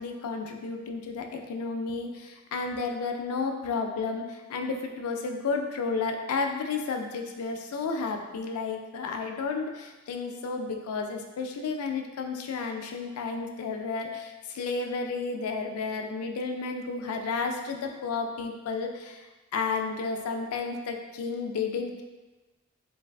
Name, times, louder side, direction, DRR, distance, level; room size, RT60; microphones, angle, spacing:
voice 1, 0.0-22.0, left 4 dB, 80° left, 3 dB, 0.3 m, -32 dB
3.2 x 2.2 x 2.3 m, 1.2 s
head